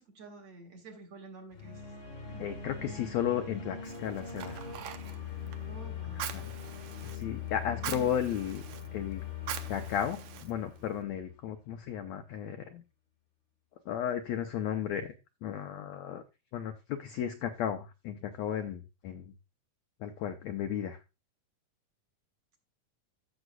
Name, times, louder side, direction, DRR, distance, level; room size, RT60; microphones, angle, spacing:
voice 1, 0.0-1.8 2.3-2.5 5.7-6.3 7.8-8.4, right 3 dB, 50° right, 2 dB, 2.6 m, -49 dB
sound 1, 1.5-11.6, left 7 dB, 40° left, 1.1 m, -42 dB
voice 2, 2.4-4.6 6.3-6.5 7.1-8.6 8.9-9.2 9.7-12.8 13.9-15.1 15.4-16.2 16.5-19.3 20.0-21.0, left 9 dB, 80° left, 6 dB, 1.6 m, -34 dB
Fire, 3.8-11.0, right 11 dB, 75° right, 1.6 m, -44 dB
14.5 x 6.2 x 2.3 m, 0.26 s
omnidirectional pair, 3.9 m